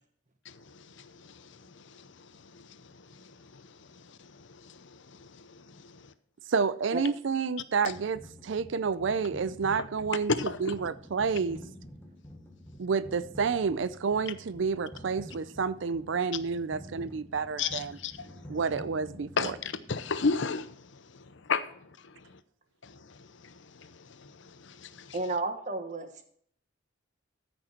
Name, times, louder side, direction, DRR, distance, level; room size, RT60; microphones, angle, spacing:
voice 1, 0.4-6.1 7.9-8.0 10.4-10.8 17.6-18.6 19.4-21.7 22.2-22.4 22.8-25.2, left 5 dB, 65° left, 0.7 m, -36 dB
voice 2, 6.5-10.3 10.6-11.6 12.8-17.9 18.5-19.5, right 5 dB, 65° right, 0.4 m, -29 dB
sound 1, 7.9-20.3, equal, 10° left, 1.2 m, -48 dB
voice 3, 25.1-26.2, right 2 dB, 35° right, 1.2 m, -32 dB
13.5 x 6.2 x 4.4 m
head